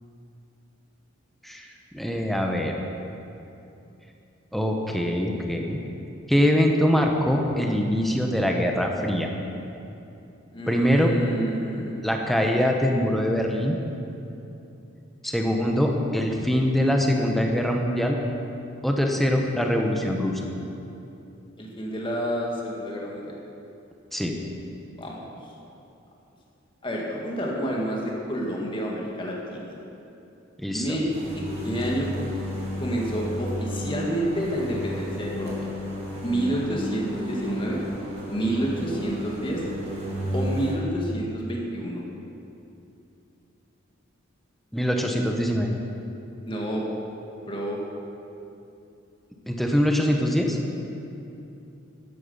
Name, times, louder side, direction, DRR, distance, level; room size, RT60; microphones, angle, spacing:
voice 1, 1.9-2.7 4.5-5.8 6.3-9.3 10.7-11.1 12.0-13.8 15.2-18.2 18.8-20.4 24.1-24.4 30.6-30.9 44.7-45.7 49.5-50.6, equal, ahead, 1 dB, 1.0 m, -23 dB
voice 2, 10.5-12.6 21.6-23.3 25.0-25.3 26.8-29.7 30.7-31.1 31.4-32.1 32.8-35.7 36.2-37.8 38.3-39.6 40.3-42.0 46.5-46.8 47.5-47.8, right 1 dB, 25° left, -2 dB, 1.9 m, -29 dB
sound 1, 31.1-40.7, equal, 30° right, 2.9 m, -33 dB
13.5 x 10.0 x 5.6 m, 2.8 s
head